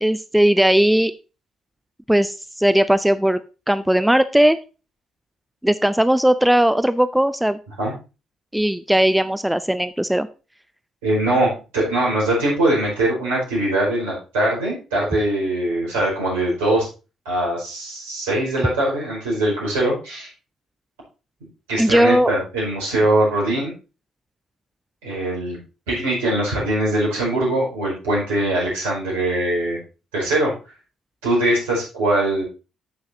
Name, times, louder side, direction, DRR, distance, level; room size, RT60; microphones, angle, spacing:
voice 1, 0.0-1.1 2.1-3.4 3.7-4.6 5.6-7.6 8.5-10.3 21.8-22.3, right 1 dB, 5° right, 13 dB, 0.5 m, -18 dB
voice 2, 11.0-16.9 17.2-20.3 21.7-23.7 25.0-25.6 25.9-29.8 30.1-30.5 31.2-32.4, right 1 dB, 75° right, -4 dB, 5.0 m, -22 dB
14.0 x 6.4 x 2.7 m, 0.31 s
figure-of-eight pair, 45°, 0 cm